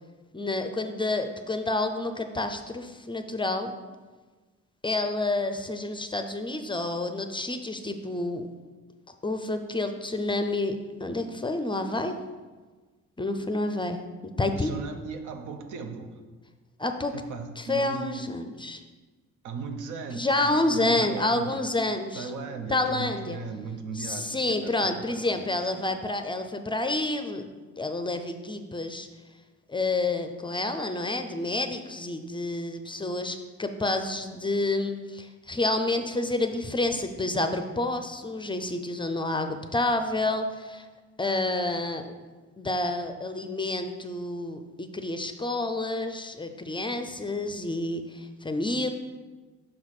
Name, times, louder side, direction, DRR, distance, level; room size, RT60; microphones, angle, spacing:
voice 1, 0.3-3.7 4.8-8.5 9.2-12.2 13.2-14.7 16.8-17.1 17.6-18.8 20.1-22.3 22.7-23.4 24.0-27.5 27.8-29.1 29.7-40.8 41.2-42.1 42.6-48.9, left 2 dB, 15° left, 7 dB, 0.4 m, -29 dB
voice 2, 14.4-16.2 17.1-18.2 19.4-21.7 22.1-25.9, right 4 dB, 80° right, 6 dB, 0.8 m, -37 dB
6.0 x 4.1 x 4.8 m, 1.3 s
cardioid pair, 90°, 30 cm